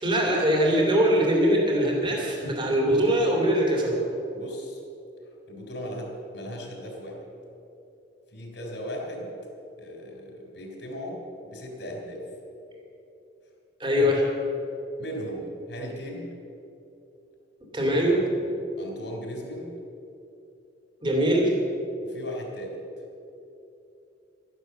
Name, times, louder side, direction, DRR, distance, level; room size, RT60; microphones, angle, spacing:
voice 1, 0.0-4.0 13.8-14.3 17.7-18.2 21.0-21.5, equal, 25° right, -1 dB, 2.7 m, -22 dB
voice 2, 4.3-4.8 5.5-7.2 8.3-9.3 9.8-12.2 15.0-16.3 18.3-19.7 22.0-22.8, equal, 70° left, 0 dB, 3.7 m, -37 dB
12.5 x 11.0 x 6.9 m, 2.8 s
head